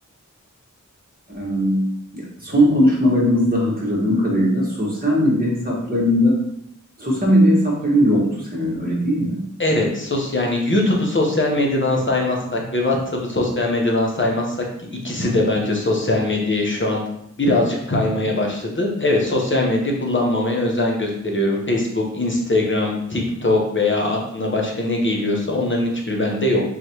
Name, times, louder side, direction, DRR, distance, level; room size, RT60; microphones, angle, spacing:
voice 1, 1.3-1.9 2.1-6.3 7.0-9.4, equal, 30° right, -4 dB, 1.4 m, -19 dB
voice 2, 9.6-14.6 15.0-17.0 17.4-26.6, left 2 dB, 40° left, -1 dB, 1.0 m, -21 dB
4.1 x 3.1 x 2.9 m, 0.74 s
wide cardioid pair, 45°, 32 cm